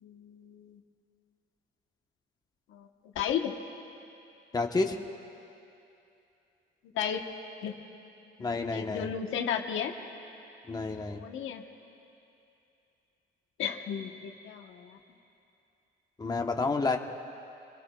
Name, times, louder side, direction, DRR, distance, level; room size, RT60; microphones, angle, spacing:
voice 1, 0.0-0.8 2.7-2.9 3.1-3.5 6.9-7.2 7.6-7.8 8.4-9.9 11.1-11.6 13.6-15.0, left 8 dB, 80° left, 4 dB, 1.1 m, -34 dB
voice 2, 4.5-5.0 8.4-9.1 10.7-11.2 16.2-17.0, left 3 dB, 20° left, 3 dB, 1.0 m, -29 dB
27.5 x 21.0 x 2.3 m, 2.7 s
cardioid pair, 90°, 20 cm